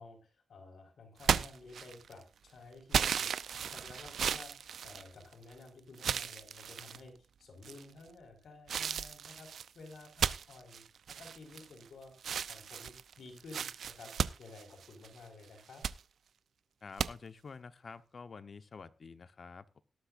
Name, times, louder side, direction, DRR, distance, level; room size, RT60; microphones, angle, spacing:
voice 1, 0.0-3.3 3.6-12.1 12.5-15.8, left 3 dB, 70° left, 6 dB, 5.2 m, -53 dB
sound 1, 1.2-2.2 2.9-5.5 6.0-7.0 7.6-8.1 8.7-11.9 12.2-15.2 15.6-16.0 17.0-17.1, right 7 dB, 85° right, 0.6 m, -35 dB
voice 2, 16.8-19.8, left 5 dB, 45° left, 12 dB, 1.0 m, -49 dB
18.0 x 12.0 x 2.6 m, 0.31 s
wide cardioid pair, 135°, 0 cm